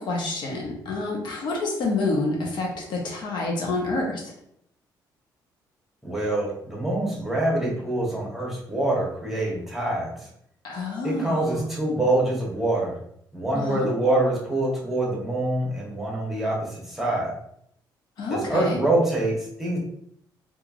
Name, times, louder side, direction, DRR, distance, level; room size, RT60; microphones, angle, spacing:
voice 1, 0.0-4.3 10.6-11.7 13.5-13.9 18.2-18.8, left 2 dB, 70° left, -1 dB, 0.8 m, -28 dB
voice 2, 6.0-10.3 11.0-12.9 13.3-17.3 18.3-19.8, right 1 dB, 5° right, -4 dB, 1.1 m, -25 dB
3.0 x 2.4 x 2.4 m, 0.69 s
cardioid pair, 105°, 8 cm